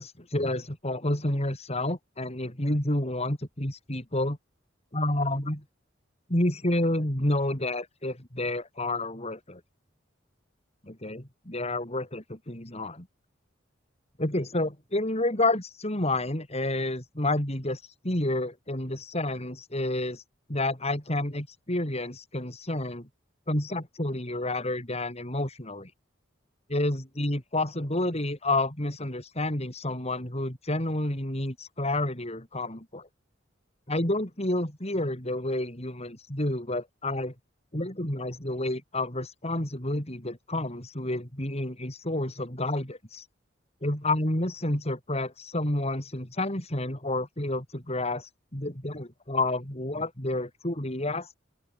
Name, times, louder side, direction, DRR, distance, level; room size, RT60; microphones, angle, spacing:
voice 1, 0.0-4.4 4.9-5.6 6.3-9.6 10.9-13.1 14.2-20.2 20.5-23.1 23.5-25.9 26.7-33.1 33.9-37.3 37.7-43.3 43.8-51.4, left 1 dB, 35° left, 5.6 m, -29 dB
open air
head